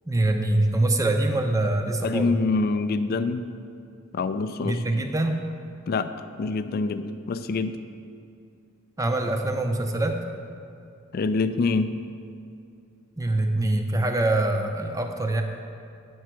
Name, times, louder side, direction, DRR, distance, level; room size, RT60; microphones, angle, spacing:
voice 1, 0.1-2.3 4.6-5.4 9.0-10.2 13.2-15.4, right 2 dB, 15° right, 4 dB, 0.5 m, -24 dB
voice 2, 2.0-3.5 4.1-4.8 5.9-6.1 6.4-7.8 11.1-11.9, left 4 dB, 45° left, 11 dB, 0.3 m, -25 dB
8.5 x 4.5 x 6.1 m, 2.5 s
head